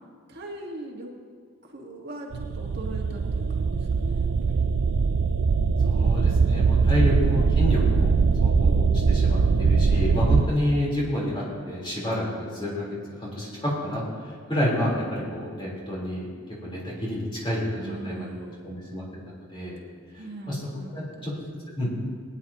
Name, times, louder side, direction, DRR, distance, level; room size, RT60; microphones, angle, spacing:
voice 1, 0.3-1.1 1.6-4.6 17.7-18.8 20.2-21.4 21.8-22.2, right 1 dB, 50° right, 0 dB, 1.5 m, -40 dB
sound 1, 2.3-10.5, right 5 dB, 70° right, 0.4 m, -21 dB
voice 2, 5.9-8.1 8.4-12.9 13.2-14.0 14.5-16.3 16.6-18.3 18.6-19.0 19.5-19.8 20.5-20.6 20.9-21.3 21.7-21.9, left 1 dB, 25° left, -5 dB, 3.6 m, -28 dB
20.0 x 9.8 x 2.9 m, 2.1 s
head